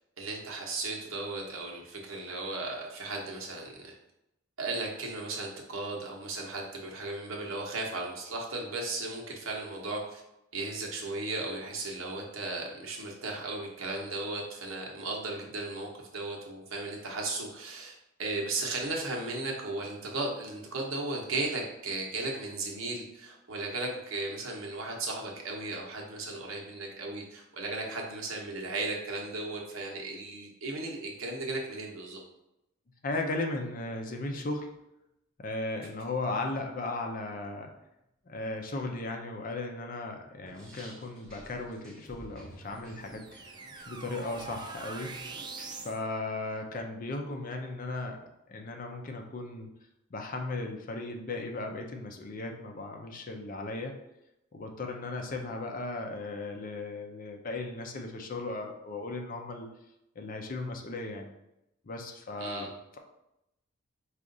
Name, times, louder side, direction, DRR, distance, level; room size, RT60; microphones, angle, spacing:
voice 1, 0.2-4.0 4.6-10.2 10.5-17.9 18.2-32.2 62.4-62.7, right 2 dB, 75° right, -1 dB, 1.0 m, -36 dB
voice 2, 33.0-34.7 35.4-37.7 38.3-45.2 45.8-48.2 48.5-49.7 50.1-54.0 54.5-59.7 60.2-61.3 61.8-63.0, left 2 dB, 40° left, 3 dB, 0.5 m, -36 dB
sound 1, 40.5-45.9, equal, 5° left, 1.0 m, -54 dB
sound 2, 42.1-46.0, right 3 dB, 20° right, 0.3 m, -44 dB
4.8 x 2.5 x 3.8 m, 0.86 s
head